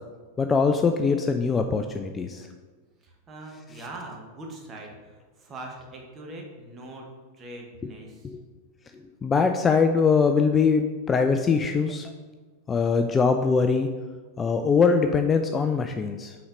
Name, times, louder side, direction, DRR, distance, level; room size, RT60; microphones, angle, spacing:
voice 1, 0.4-2.5 8.2-8.4 8.9-12.1 12.7-13.9 14.4-16.3, left 5 dB, 20° left, 6 dB, 0.3 m, -22 dB
voice 2, 3.0-7.0 7.3-8.3, right 2 dB, 25° right, 0 dB, 1.2 m, -42 dB
5.6 x 4.2 x 5.1 m, 1.4 s
figure-of-eight pair, 90°, 0 cm